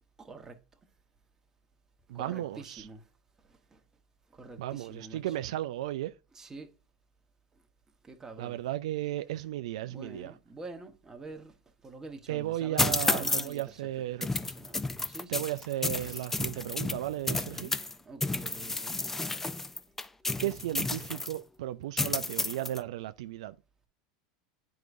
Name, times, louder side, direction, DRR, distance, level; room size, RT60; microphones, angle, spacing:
voice 1, 0.2-0.6 2.1-3.0 3.4-3.8 4.3-5.2 6.3-6.7 8.0-8.6 9.9-11.5 11.8-13.8 14.2-15.4 15.9-16.2 17.3-19.0, right 3 dB, 15° right, 1.1 m, -47 dB
voice 2, 2.1-2.9 4.6-6.1 8.4-10.4 12.3-14.3 15.3-17.7 20.4-23.6, right 13 dB, 80° right, 0.3 m, -35 dB
sound 1, 12.8-13.6 14.2-17.9 18.2-21.4 22.0-22.8, left 2 dB, 10° left, 0.3 m, -31 dB
9.2 x 4.7 x 2.5 m
supercardioid pair, 110°, 3 cm